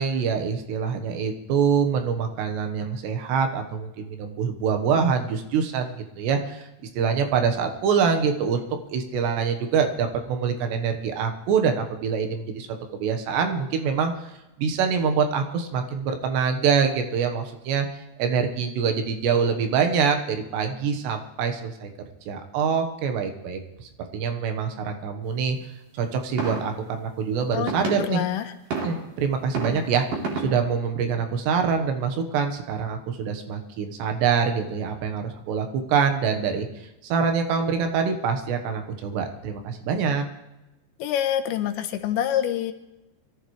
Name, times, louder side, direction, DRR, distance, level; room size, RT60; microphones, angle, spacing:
voice 1, 0.0-6.7 6.9-12.7 12.9-14.3 14.6-17.9 18.2-21.9 22.3-25.6 25.9-28.2 28.8-30.1 30.4-36.7 37.0-40.2, right 6 dB, 75° right, 5 dB, 3.4 m, -25 dB
sound 1, 26.4-26.6 27.7-27.9 28.7-28.9 29.5-29.7 30.1-30.4, right 4 dB, 50° right, 4.2 m, -27 dB
voice 2, 28.0-28.5 41.0-42.7, left 10 dB, 90° left, 8 dB, 3.3 m, -26 dB
23.0 x 14.0 x 3.2 m, 0.95 s
omnidirectional pair, 5.0 m